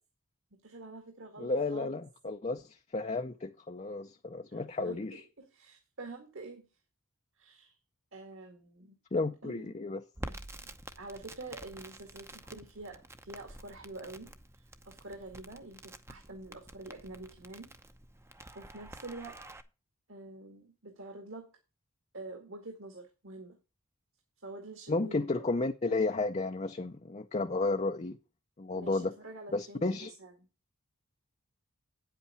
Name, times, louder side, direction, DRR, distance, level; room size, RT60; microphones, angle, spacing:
voice 1, 0.6-2.0 4.5-6.7 7.4-7.8 8.1-9.0 9.4-9.8 10.6-10.7 11.0-14.3 14.9-17.7 18.5-19.4 20.1-21.5 22.1-23.6 24.4-25.5 28.7-30.3, right 2 dB, 60° right, 2.0 m, -47 dB
voice 2, 1.4-5.2 9.1-10.0 24.9-28.2 28.6-29.1 29.5-30.1, left 3 dB, 30° left, 0.6 m, -32 dB
Crackle, 10.1-19.6, right 1 dB, 10° right, 0.7 m, -49 dB
9.4 x 8.2 x 4.3 m
head